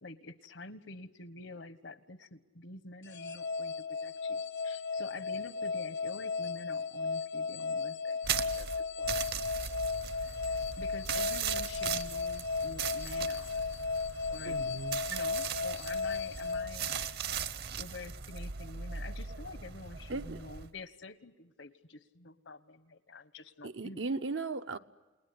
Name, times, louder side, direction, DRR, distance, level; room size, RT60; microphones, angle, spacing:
voice 1, 0.0-9.3 10.5-13.6 14.3-14.8 15.1-17.2 17.8-24.0, left 2 dB, 85° left, 1.3 m, -48 dB
sound 1, 3.0-17.4, left 4 dB, 65° left, 0.9 m, -35 dB
sound 2, 8.2-20.7, right 7 dB, 60° right, 0.9 m, -38 dB
voice 2, 14.4-15.0 20.1-20.4 23.6-24.8, right 3 dB, 90° right, 1.0 m, -37 dB
29.5 x 20.5 x 9.7 m
head